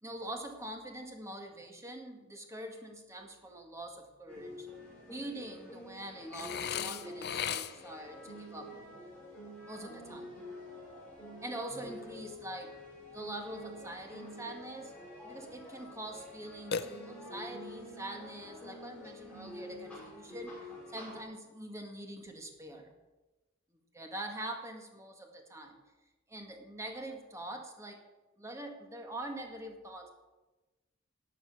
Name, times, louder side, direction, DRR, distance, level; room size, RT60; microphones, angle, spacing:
voice 1, 0.0-4.7 5.1-8.8 9.7-10.3 11.4-12.7 13.1-15.0 15.2-20.6 20.9-22.9 23.9-25.8 26.3-28.0 28.4-30.1, right 1 dB, 15° right, 3 dB, 2.0 m, -44 dB
sound 1, 4.3-21.2, left 1 dB, 5° left, 5.2 m, -48 dB
Burping eructation, 6.3-8.0 16.7-17.5, left 7 dB, 55° left, 0.6 m, -37 dB
12.5 x 8.3 x 8.0 m, 1.1 s
head